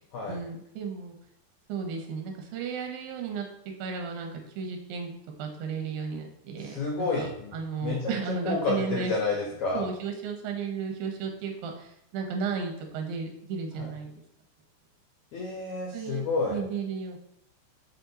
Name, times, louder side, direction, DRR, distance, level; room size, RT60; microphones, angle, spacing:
voice 1, 0.3-1.2 1.7-4.3 4.6-5.1 5.4-7.3 7.5-9.1 9.7-14.2 15.9-17.2, right 5 dB, 70° right, 3 dB, 2.4 m, -34 dB
voice 2, 6.6-7.5 7.8-8.1 8.4-9.8 13.8-13.9 15.3-16.6, left 3 dB, 80° left, -2 dB, 1.6 m, -30 dB
6.4 x 4.3 x 4.1 m, 0.74 s
omnidirectional pair, 5.1 m